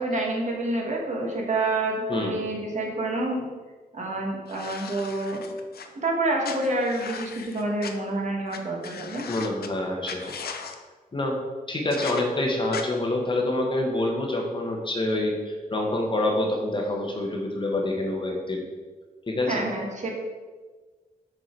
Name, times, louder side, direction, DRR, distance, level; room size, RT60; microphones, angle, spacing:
voice 1, 0.0-3.4 3.9-5.5 6.0-9.3 19.5-20.1, right 2 dB, 50° right, -1 dB, 1.4 m, -28 dB
sound 1, 4.5-5.9 6.4-7.9 8.5-8.6 8.8-9.7 10.0-10.8 11.9-12.2 12.7-12.8, left 6 dB, 90° left, 0.6 m, -37 dB
voice 2, 9.3-10.4 11.1-11.4 11.7-18.7 19.3-19.6, left 1 dB, 30° left, 0 dB, 1.0 m, -27 dB
6.5 x 4.8 x 4.5 m, 1.4 s
wide cardioid pair, 145°, 16 cm